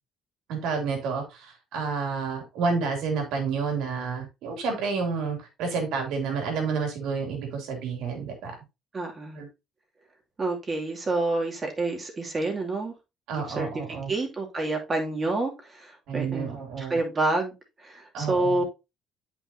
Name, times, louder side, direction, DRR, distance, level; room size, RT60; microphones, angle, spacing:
voice 1, 0.5-8.6 9.3-9.5 13.3-14.1 16.1-17.0 18.1-18.6, right 5 dB, 80° right, 2.8 m, -30 dB
voice 2, 8.9-9.4 10.4-12.9 13.3-13.8 14.1-16.5 16.8-17.5 17.8-18.6, right 2 dB, 30° right, 2.5 m, -28 dB
8.8 x 5.6 x 2.8 m
cardioid pair, 95°, 0 cm